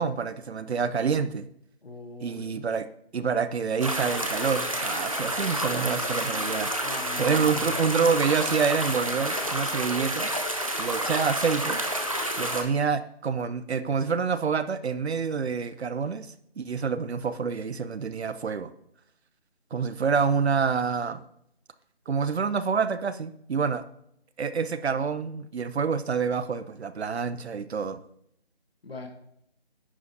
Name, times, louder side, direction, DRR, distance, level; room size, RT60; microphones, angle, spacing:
voice 1, 0.0-1.5 2.2-2.9 3.1-6.7 7.2-10.3 10.8-11.8 12.4-16.3 16.6-18.7 19.7-21.2 22.1-23.8 24.4-28.0, right 5 dB, 80° right, 13 dB, 0.7 m, -27 dB
voice 2, 1.8-2.5 6.8-7.8 28.8-29.1, left 3 dB, 65° left, 4 dB, 1.5 m, -40 dB
sound 1, 3.8-12.6, right 1 dB, 35° right, 0.7 m, -29 dB
9.8 x 4.8 x 2.8 m, 0.72 s
figure-of-eight pair, 180°, 32 cm